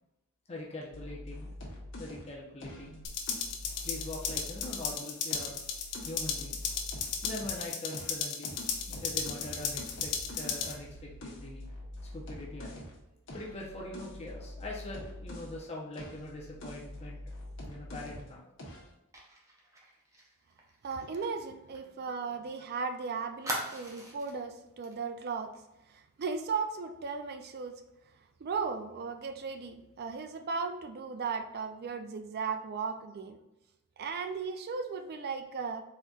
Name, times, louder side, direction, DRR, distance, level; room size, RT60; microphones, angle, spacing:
voice 1, 0.5-1.5 2.0-3.0 3.8-5.5 6.0-6.7 7.2-8.6 8.9-12.8 13.3-17.2 17.6-18.4, left 1 dB, 30° left, -2 dB, 0.7 m, -42 dB
sound 1, 0.9-4.9 5.3-7.6 7.9-15.6 15.9-18.3 18.6-18.9, left 1 dB, 60° left, 1.1 m, -45 dB
sound 2, 3.0-10.7, left 6 dB, 85° left, 0.7 m, -35 dB
Fire, 19.1-22.6 22.8-22.9 23.4-24.4 24.8-25.0 25.3-25.6, right 1 dB, 15° right, 0.8 m, -41 dB
voice 2, 20.8-25.5 26.2-27.8 28.4-33.4 34.0-35.8, right 5 dB, 45° right, 7 dB, 0.4 m, -36 dB
4.2 x 3.9 x 2.4 m, 0.93 s
head